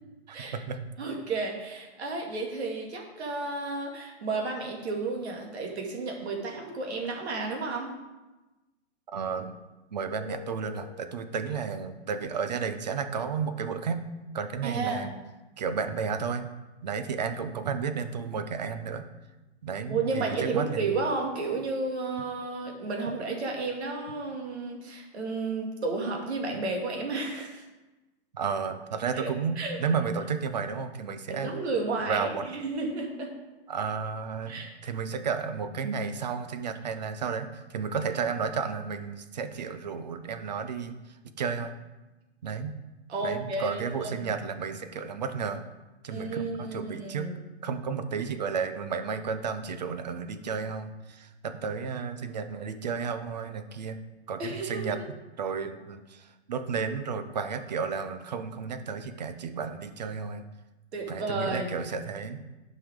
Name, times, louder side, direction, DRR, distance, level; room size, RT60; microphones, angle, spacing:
voice 1, 0.3-0.9 9.1-9.5 9.9-14.0 14.3-15.1 15.6-16.5 16.8-19.1 19.6-20.9 26.5-26.6 28.3-31.5 32.1-32.4 33.7-41.7 42.4-42.8 43.2-45.6 46.0-47.3 47.6-54.0 54.3-55.0 55.4-60.4 61.1-62.4, right 6 dB, 40° right, 9 dB, 0.6 m, -32 dB
voice 2, 1.0-7.9 14.6-15.1 19.9-27.6 29.1-29.3 29.6-29.8 31.3-33.3 34.5-34.7 43.1-44.3 46.1-47.4 54.4-55.0 60.9-61.7, right 3 dB, 65° right, 1 dB, 2.2 m, -32 dB
Keyboard (musical), 10.1-12.1, left 16 dB, 55° left, 1.8 m, -48 dB
11.5 x 5.5 x 3.6 m, 1.1 s
hypercardioid pair, 180°, 35 cm